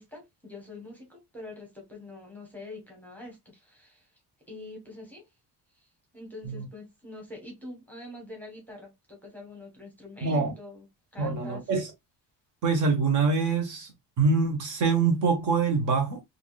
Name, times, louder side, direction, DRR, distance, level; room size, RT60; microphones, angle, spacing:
voice 1, 0.0-4.1 4.5-5.2 5.8-10.9 11.1-11.6, left 2 dB, 5° left, 1.0 m, -45 dB
voice 2, 10.2-10.5 11.2-11.9 12.6-13.9 14.2-16.2, right 4 dB, 45° right, 1.0 m, -25 dB
3.5 x 2.5 x 2.3 m
cardioid pair, 170°, 41 cm